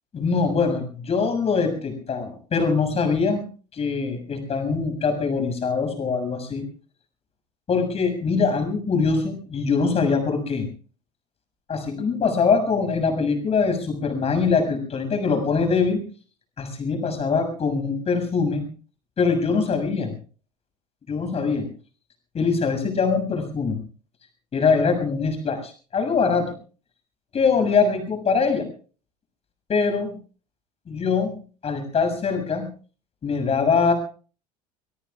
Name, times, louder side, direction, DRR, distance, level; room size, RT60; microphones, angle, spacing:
voice 1, 0.1-3.4 3.7-6.6 7.7-10.7 11.7-16.0 16.6-18.6 19.2-20.2 21.1-21.7 22.3-23.8 24.5-26.5 27.3-28.7 29.7-30.1 30.9-32.7 33.2-33.9, left 5 dB, 30° left, 6 dB, 6.8 m, -23 dB
25.0 x 23.0 x 2.4 m, 0.39 s
figure-of-eight pair, 75°, 21 cm